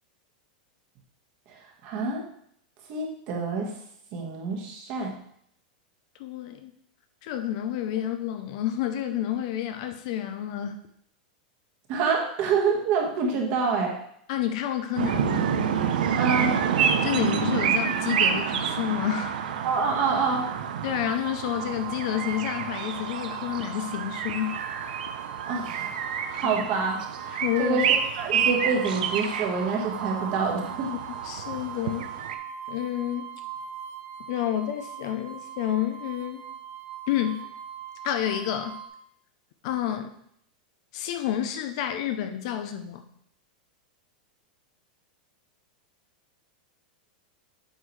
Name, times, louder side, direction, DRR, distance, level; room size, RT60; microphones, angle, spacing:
voice 1, 1.5-2.2 2.9-3.7 4.1-5.1 11.9-14.0 16.2-16.5 19.6-20.5 25.4-25.9 26.3-27.9 28.2-30.9, right 4 dB, 35° right, 0 dB, 1.4 m, -27 dB
voice 2, 6.2-6.7 7.2-10.8 14.3-15.8 17.0-19.3 20.8-24.6 26.4-26.5 27.3-27.8 31.2-32.1 32.7-33.3 34.3-36.5 37.1-37.5 38.0-38.8 39.6-40.1 40.9-43.0, left 11 dB, 40° left, 7 dB, 0.5 m, -29 dB
sound 1, 15.0-32.4, right 7 dB, 75° right, 0.7 m, -28 dB
sound 2, 20.9-38.9, right 8 dB, 60° right, 1.9 m, -41 dB
7.9 x 5.8 x 3.2 m, 0.69 s
supercardioid pair, 175°, 5 cm